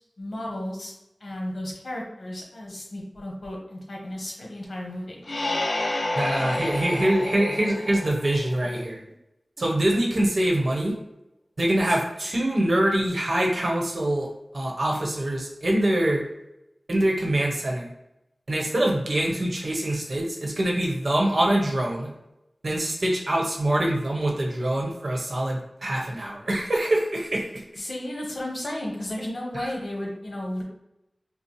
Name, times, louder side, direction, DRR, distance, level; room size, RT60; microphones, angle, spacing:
voice 1, 0.2-0.9 1.2-5.1 27.8-30.6, left 1 dB, 80° left, -2 dB, 1.1 m, -33 dB
sound 1, 5.2-8.8, left 2 dB, 60° left, 0.5 m, -29 dB
voice 2, 6.1-9.0 9.6-10.9 11.6-14.3 14.5-16.2 16.9-17.9 18.5-22.1 22.6-27.6 29.5-29.7, right 1 dB, 65° right, -1 dB, 0.9 m, -24 dB
5.6 x 2.0 x 3.1 m, 0.87 s
wide cardioid pair, 70°, 0 cm